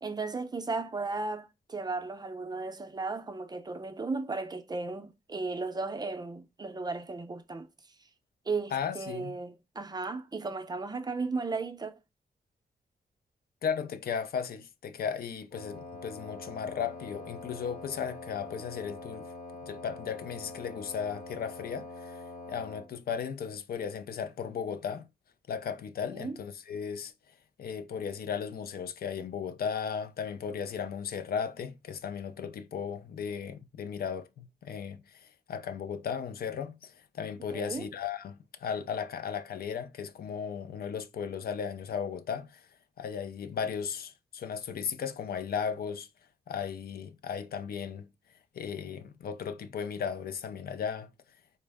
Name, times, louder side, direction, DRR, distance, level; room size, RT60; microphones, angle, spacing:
voice 1, 0.0-7.7 8.5-12.0 26.1-26.4 37.5-37.9, right 3 dB, 25° right, 0.5 m, -35 dB
voice 2, 8.7-9.3 13.6-19.3 19.6-25.1 25.5-27.1 27.6-42.7 43.0-46.1 46.5-48.1 48.5-51.1, left 7 dB, 70° left, 0.5 m, -36 dB
Wind instrument woodwind instrument, 15.5-22.9, left 3 dB, 55° left, 1.6 m, -44 dB
4.2 x 2.0 x 3.4 m
cardioid pair, 95°, 16 cm